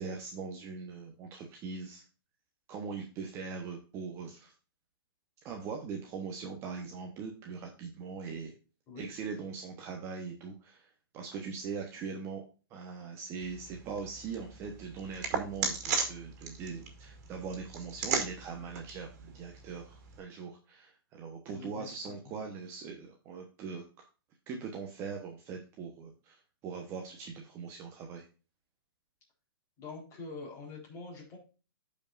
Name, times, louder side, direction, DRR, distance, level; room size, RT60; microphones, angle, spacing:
voice 1, 0.0-2.0 2.7-4.5 5.4-8.5 9.0-12.4 12.7-23.8 24.5-28.2, right 5 dB, 20° right, 2 dB, 1.0 m, -41 dB
sound 1, 13.4-20.2, right 5 dB, 40° right, 2.7 m, -37 dB
voice 2, 21.5-22.1 29.8-31.4, left 4 dB, 20° left, -2 dB, 4.0 m, -45 dB
14.0 x 5.3 x 2.5 m, 0.34 s
hypercardioid pair, 155°, 12 cm